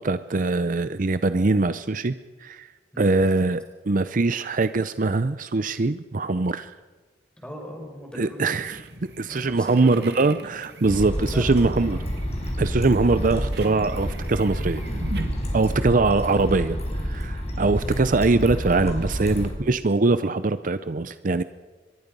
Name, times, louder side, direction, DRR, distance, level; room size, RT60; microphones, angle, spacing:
voice 1, 0.0-2.1 2.4-2.7 3.0-6.7 8.2-8.8 9.2-12.0 12.6-14.8 15.5-21.4, right 3 dB, 45° right, 13 dB, 0.6 m, -22 dB
voice 2, 7.4-8.6 9.2-10.4 11.2-12.1 19.2-19.7, equal, 5° left, 1 dB, 5.1 m, -40 dB
sound 1, 8.6-15.8, right 2 dB, 65° right, 2.1 m, -40 dB
sound 2, 10.8-19.5, equal, 35° left, 4.7 m, -29 dB
24.0 x 21.5 x 5.4 m, 1.3 s
head